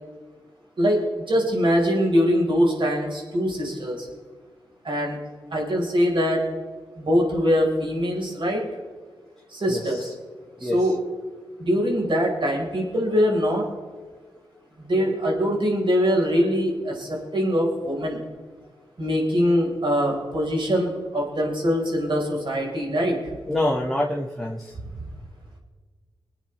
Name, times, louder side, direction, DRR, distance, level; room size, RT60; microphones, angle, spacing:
voice 1, 1.3-4.1 4.8-5.2 5.5-6.5 7.0-8.6 9.5-10.1 10.6-10.9 11.6-13.7 14.8-18.3 19.0-23.2 24.8-24.9, equal, 55° right, -1 dB, 4.8 m, -23 dB
voice 2, 9.7-10.1 10.6-10.9 23.5-24.7, left 1 dB, ahead, -3 dB, 2.0 m, -26 dB
22.5 x 8.9 x 3.4 m, 1.5 s
cardioid pair, 45°, 10 cm